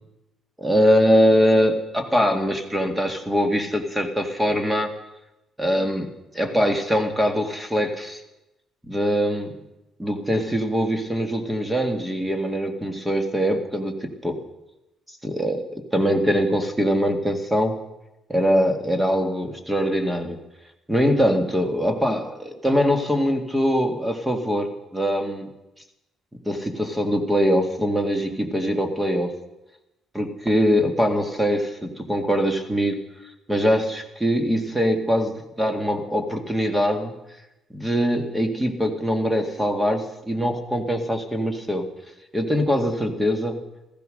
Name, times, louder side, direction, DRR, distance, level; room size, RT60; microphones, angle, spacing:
voice 1, 0.6-4.9 5.6-6.1 6.4-8.2 8.9-9.6 10.0-14.4 15.2-17.8 18.3-20.4 20.9-25.5 26.5-29.3 30.1-33.0 33.5-37.1 37.7-41.8 42.3-43.6, equal, 10° right, 6 dB, 1.9 m, -22 dB
15.0 x 14.0 x 6.4 m, 0.94 s
cardioid pair, 110°, 0 cm